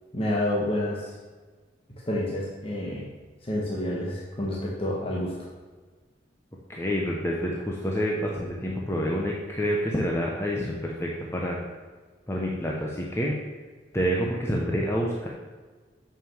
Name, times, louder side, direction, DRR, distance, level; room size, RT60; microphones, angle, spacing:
voice 1, 0.1-1.1 2.1-3.1 3.4-5.3, left 1 dB, 30° left, -5 dB, 1.4 m, -28 dB
voice 2, 6.7-11.6 12.3-13.4 13.9-15.3, equal, 15° left, -2 dB, 0.9 m, -28 dB
6.8 x 6.4 x 7.3 m, 1.4 s
head